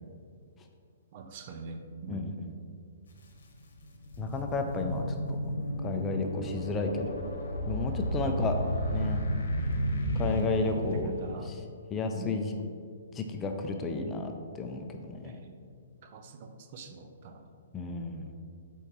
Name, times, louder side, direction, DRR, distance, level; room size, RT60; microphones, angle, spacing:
voice 1, 1.1-2.3 8.2-8.5 9.0-9.3 10.6-11.5 12.1-12.4 15.2-15.6 16.0-17.4, right 4 dB, 45° right, 6 dB, 0.5 m, -43 dB
voice 2, 2.1-2.5 4.2-5.1 5.8-7.2 7.7-8.6 8.9-9.2 10.2-11.1 11.4-11.6 11.9-12.5 13.1-14.3 14.6-15.4 17.7-18.3, left 3 dB, 20° left, 4 dB, 0.5 m, -32 dB
sound 1, 3.1-3.2 3.7-11.4, equal, 60° left, 1.0 m, -33 dB
7.8 x 4.6 x 3.0 m, 2.3 s
figure-of-eight pair, 120°, 0 cm